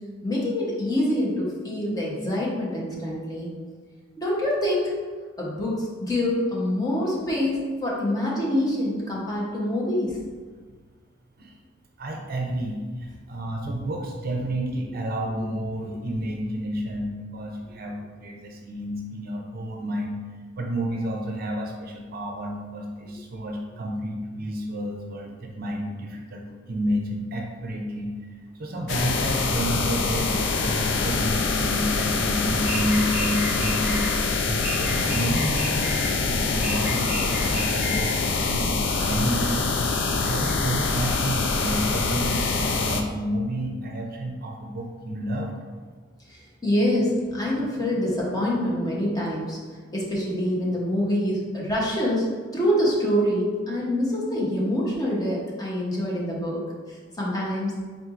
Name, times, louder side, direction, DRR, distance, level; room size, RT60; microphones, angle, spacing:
voice 1, 0.2-3.5 4.2-4.9 5.4-10.2 46.3-49.6 49.9-52.3 52.5-56.6 56.9-57.8, left 1 dB, 20° left, -5 dB, 0.9 m, -25 dB
voice 2, 12.0-20.2 20.6-28.1 28.5-45.5, equal, 50° right, 1 dB, 0.5 m, -30 dB
sound 1, 28.9-43.0, left 4 dB, 65° left, 0.4 m, -25 dB
sound 2, 32.6-34.1 34.6-36.2 36.6-38.2, equal, 10° right, 0.7 m, -33 dB
4.4 x 3.8 x 2.5 m, 1.5 s
head